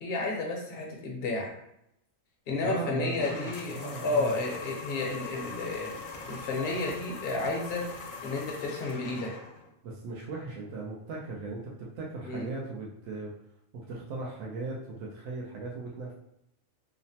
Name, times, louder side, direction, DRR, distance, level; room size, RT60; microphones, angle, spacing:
voice 1, 0.0-1.5 2.5-3.8 4.0-5.9 6.3-7.8 8.2-9.3 12.2-12.5, left 3 dB, 55° left, 0 dB, 0.8 m, -31 dB
voice 2, 2.6-4.4 9.8-13.3 13.7-16.1, right 3 dB, 75° right, -3 dB, 0.9 m, -38 dB
sound 1, 3.1-9.7, left 4 dB, 80° left, 1.0 m, -42 dB
3.0 x 2.0 x 2.7 m, 0.78 s
omnidirectional pair, 1.4 m